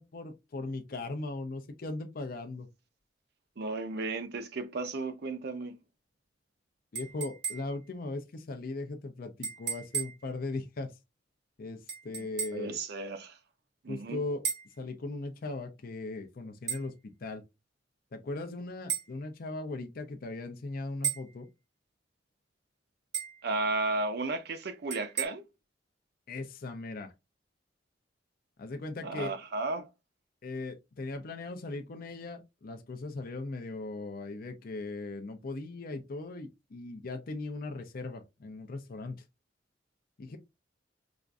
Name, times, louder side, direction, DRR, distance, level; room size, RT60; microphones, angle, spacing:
voice 1, 0.0-2.7 6.9-10.9 11.6-12.8 13.9-14.4 14.8-17.4 18.1-21.5 26.3-27.1 28.6-29.3 30.4-39.2 40.2-40.4, left 2 dB, 50° left, 0.5 m, -38 dB
voice 2, 3.6-5.8 12.2-13.4 13.8-14.2 23.4-25.4 29.0-29.9, right 3 dB, 60° right, 0.5 m, -34 dB
sound 1, 6.9-7.9 9.4-10.3 11.9-12.7 14.4-14.8 16.7-16.9 18.9-19.1 21.0-21.3 23.1-23.4 24.9-25.2, right 7 dB, 85° right, 1.3 m, -35 dB
5.0 x 2.5 x 2.3 m
head